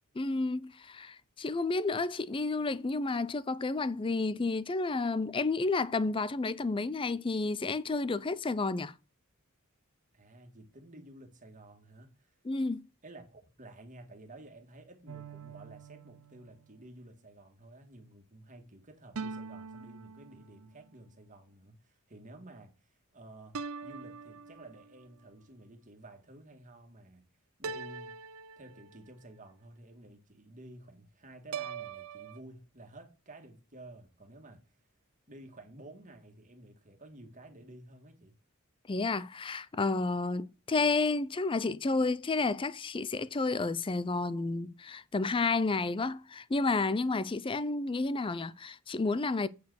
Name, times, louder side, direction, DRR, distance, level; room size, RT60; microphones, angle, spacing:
voice 1, 0.2-8.9 12.4-12.9 38.9-49.5, left 3 dB, 25° left, 0.4 m, -31 dB
voice 2, 10.1-12.4 13.0-27.2 27.6-28.1 28.6-34.8 35.3-38.4, right 1 dB, 35° right, 1.9 m, -52 dB
sound 1, 15.1-16.7 19.1-20.8 23.5-25.0 27.6-29.2 31.5-32.4, right 5 dB, 75° right, 0.6 m, -43 dB
8.3 x 4.7 x 6.3 m
head